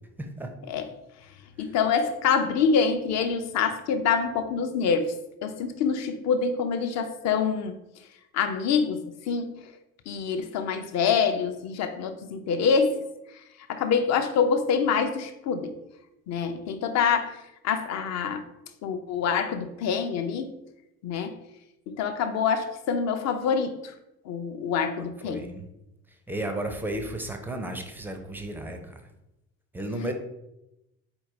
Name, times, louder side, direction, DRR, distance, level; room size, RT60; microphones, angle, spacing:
voice 1, 0.2-0.5 1.6-1.7 25.0-25.7 26.1-29.1 29.7-30.1, right 1 dB, 5° right, 5 dB, 0.5 m, -34 dB
voice 2, 1.6-5.1 5.4-7.7 8.3-9.5 10.1-13.0 13.7-15.7 16.3-17.4 17.6-18.4 18.8-20.5 21.0-21.4 21.9-23.9 24.3-25.5, left 6 dB, 40° left, 7 dB, 0.6 m, -26 dB
4.3 x 2.8 x 3.8 m, 0.89 s
figure-of-eight pair, 50°, 42 cm